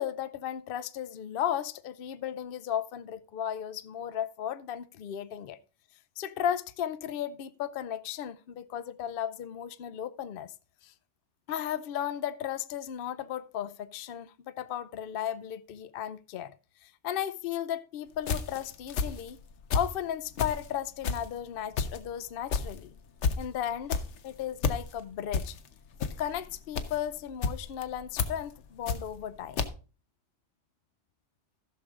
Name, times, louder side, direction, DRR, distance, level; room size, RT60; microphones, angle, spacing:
voice 1, 0.0-5.6 6.2-10.5 10.8-10.9 11.5-16.5 16.8-19.4 19.7-22.9 23.4-25.6 26.2-29.6, left 10 dB, 60° left, 0.7 m, -35 dB
sound 1, 18.2-20.0 20.3-29.3 29.6-29.7, left 5 dB, 85° left, 1.1 m, -31 dB
14.5 x 6.3 x 3.6 m
omnidirectional pair, 1.2 m